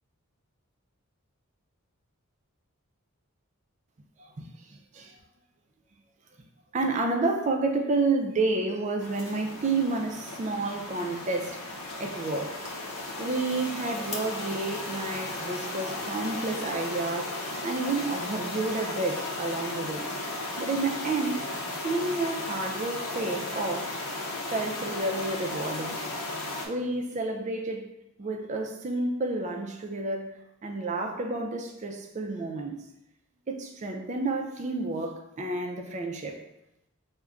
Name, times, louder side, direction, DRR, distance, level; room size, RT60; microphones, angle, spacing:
voice 1, 6.7-11.6 12.0-12.6 13.2-20.1 20.6-21.4 21.8-23.9 24.5-26.0 26.7-27.9 28.2-30.3 30.6-32.8 33.5-36.4, right 3 dB, 35° right, 3 dB, 0.3 m, -30 dB
sound 1, 9.0-26.7, left 2 dB, 80° left, 0.6 m, -35 dB
5.0 x 2.1 x 2.3 m, 0.86 s
head